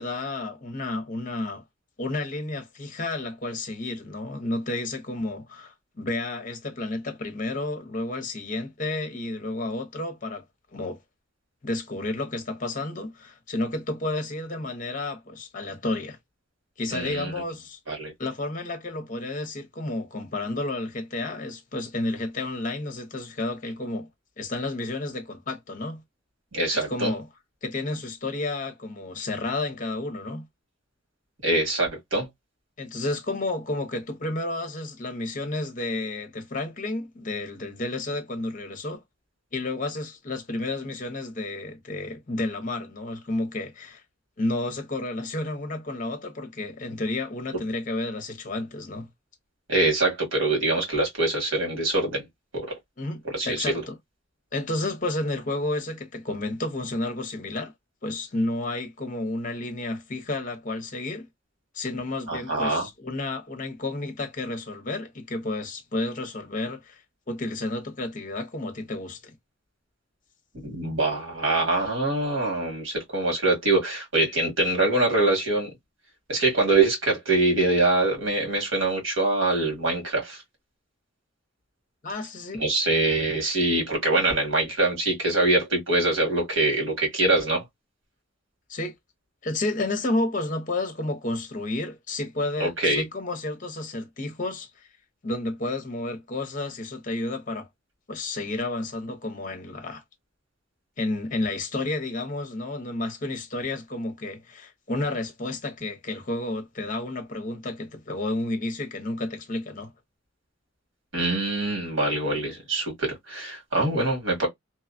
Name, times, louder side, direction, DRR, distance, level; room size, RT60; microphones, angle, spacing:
voice 1, 0.0-1.6 2.0-10.4 10.7-11.0 11.6-16.2 16.8-17.8 18.2-24.1 24.4-26.0 26.7-27.3 27.6-30.4 32.8-39.0 39.5-44.0 44.4-49.1 53.0-54.0 54.5-57.7 58.0-61.3 61.7-67.0 67.3-69.3 82.0-82.6 88.7-88.9 89.4-94.9 95.2-97.7 98.1-100.0 101.0-109.9, left 2 dB, 45° left, 0.7 m, -31 dB
voice 2, 16.9-17.3 17.9-18.1 26.5-27.1 31.4-32.3 49.7-52.2 52.5-52.7 53.2-53.7 62.3-62.9 70.6-75.7 76.3-80.4 82.6-87.6 92.6-93.0 111.1-114.5, right 2 dB, 85° right, 1.7 m, -24 dB
2.8 x 2.2 x 2.4 m
head